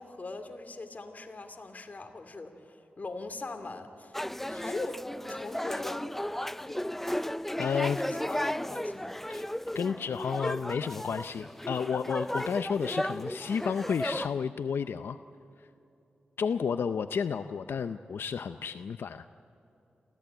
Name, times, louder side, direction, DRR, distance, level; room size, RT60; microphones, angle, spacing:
voice 1, 0.0-4.2 4.5-5.0 5.3-6.1 6.6-6.9 7.9-9.2, left 3 dB, 45° left, 6 dB, 2.7 m, -41 dB
sound 1, 4.1-14.3, left 1 dB, 5° left, 0.4 m, -34 dB
voice 2, 7.6-8.0 9.3-9.4 9.7-15.2 16.4-19.2, left 6 dB, 90° left, 10 dB, 0.5 m, -31 dB
28.0 x 15.0 x 9.1 m, 3.0 s
cardioid pair, 65°, 4 cm